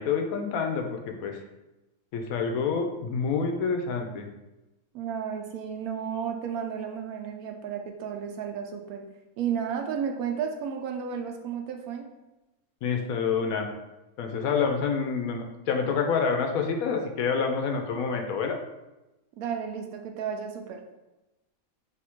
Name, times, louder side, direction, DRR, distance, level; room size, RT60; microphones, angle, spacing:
voice 1, 0.0-1.4 2.1-4.3 12.8-13.7 14.2-18.6, left 5 dB, 75° left, 4 dB, 1.0 m, -27 dB
voice 2, 4.9-9.0 9.4-12.0 19.4-20.8, right 7 dB, 85° right, 4 dB, 1.1 m, -33 dB
3.5 x 2.5 x 4.4 m, 1.0 s
omnidirectional pair, 1.5 m